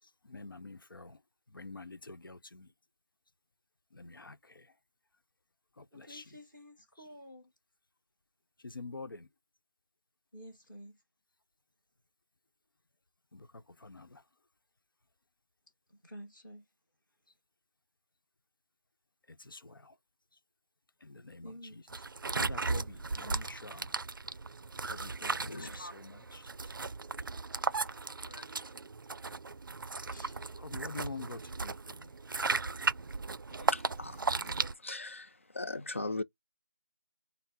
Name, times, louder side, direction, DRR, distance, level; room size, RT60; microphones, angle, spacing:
voice 1, 0.2-1.2 1.5-2.7 3.9-4.7 5.8-6.3 7.0-7.1 8.6-9.3 13.3-13.5 13.8-14.2 19.3-19.9 21.0-21.9 22.4-23.9 24.9-26.5 30.6-32.1, left 3 dB, 85° left, 0.8 m, -47 dB
voice 2, 5.9-7.5 10.3-10.9 16.0-16.6 21.4-21.8 30.1-30.4, equal, ahead, 0.8 m, -50 dB
sound 1, 21.9-34.7, right 4 dB, 80° right, 0.4 m, -36 dB
voice 3, 25.3-25.9 27.6-27.9 28.2-28.6 33.5-36.2, left 2 dB, 40° left, 0.4 m, -41 dB
5.8 x 2.0 x 4.1 m
figure-of-eight pair, 175°, 11 cm